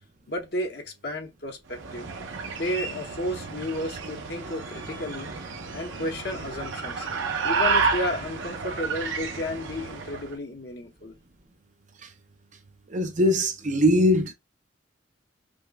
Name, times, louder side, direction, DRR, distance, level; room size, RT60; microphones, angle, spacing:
voice 1, 0.3-2.1 2.5-5.3 5.7-7.1 7.4-11.1, left 1 dB, 55° left, 1.0 m, -32 dB
sound 1, 1.7-10.3, right 5 dB, 90° right, 0.7 m, -31 dB
voice 2, 12.9-14.3, equal, 40° right, 0.6 m, -21 dB
5.2 x 2.1 x 2.2 m
head